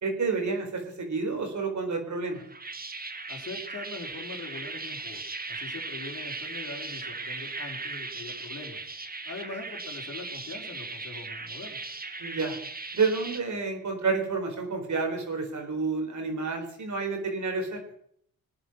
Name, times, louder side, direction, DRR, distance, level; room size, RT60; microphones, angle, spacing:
voice 1, 0.0-2.4 12.2-12.6 12.9-17.8, right 4 dB, 55° right, 4 dB, 4.0 m, -29 dB
sound 1, 2.3-13.4, right 3 dB, 25° right, 1.6 m, -38 dB
voice 2, 3.3-5.2 5.5-8.9 9.2-11.8, left 3 dB, 45° left, 3 dB, 3.7 m, -42 dB
20.0 x 9.1 x 5.9 m, 0.68 s
cardioid pair, 65°, 35 cm